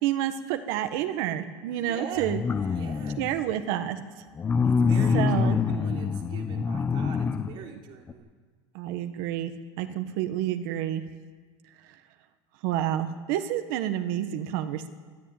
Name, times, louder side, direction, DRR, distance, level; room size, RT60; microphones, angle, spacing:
voice 1, 0.0-2.4 3.2-4.0 5.1-5.6 8.7-11.0 12.6-14.9, right 11 dB, 70° right, 8 dB, 1.5 m, -29 dB
voice 2, 1.7-2.3 2.7-3.3 4.6-8.3, right 6 dB, 45° right, 2 dB, 3.3 m, -42 dB
sound 1, 2.2-3.4 4.4-7.5 8.1-8.2, left 5 dB, 15° left, 0.7 m, -25 dB
23.0 x 14.0 x 9.0 m, 1.5 s
cardioid pair, 165°, 12 cm